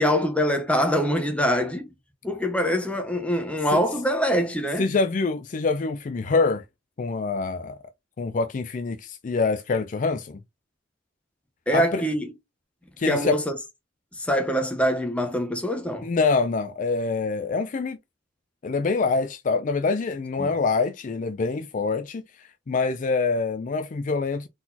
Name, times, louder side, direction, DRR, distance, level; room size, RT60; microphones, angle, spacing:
voice 1, 0.0-1.9 2.2-4.8 11.7-12.3 13.1-13.6 14.1-16.1 20.4-20.5, equal, 5° left, 0.9 m, -24 dB
voice 2, 4.8-6.6 7.0-7.8 8.2-10.4 11.7-12.0 13.0-13.4 16.0-18.0 18.6-24.5, left 4 dB, 40° left, 0.4 m, -25 dB
4.1 x 3.8 x 2.8 m
head